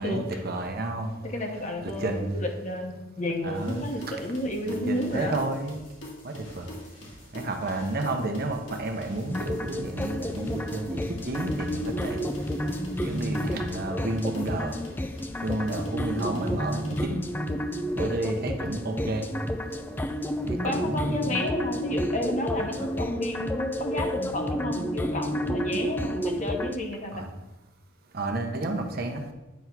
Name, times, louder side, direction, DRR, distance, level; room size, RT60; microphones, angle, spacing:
voice 1, 0.0-1.1 1.8-2.4 3.4-3.9 4.7-5.8 6.2-6.6 7.3-12.2 13.0-14.7 15.4-17.2 18.0-19.2 20.5-21.5 22.8-22.9 27.1-27.2 28.1-29.2, right 2 dB, 50° right, 4 dB, 0.9 m, -31 dB
voice 2, 1.2-5.4 20.6-27.3, left 1 dB, 40° left, 3 dB, 1.0 m, -31 dB
sound 1, 3.5-17.0, left 1 dB, 70° left, 2.2 m, -45 dB
sound 2, 9.3-26.8, equal, 10° left, 0.4 m, -31 dB
9.4 x 3.5 x 6.0 m, 1.0 s
head